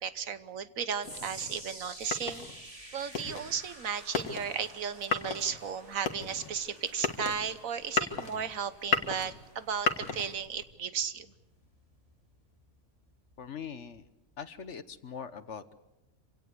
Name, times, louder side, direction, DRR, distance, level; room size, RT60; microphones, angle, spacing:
voice 1, 0.0-2.5 2.9-11.3, right 7 dB, 70° right, 13 dB, 1.4 m, -35 dB
sound 1, 1.0-10.7, left 5 dB, 85° left, 2.1 m, -35 dB
sound 2, 1.0-13.4 13.7-14.0 14.7-14.8, right 1 dB, 25° right, 3.2 m, -51 dB
sound 3, 3.9-10.1, right 1 dB, 50° right, 6.5 m, -59 dB
voice 2, 13.4-14.1 14.4-15.7, left 7 dB, 55° left, 13 dB, 1.3 m, -42 dB
26.5 x 17.5 x 8.3 m, 0.95 s
omnidirectional pair, 1.5 m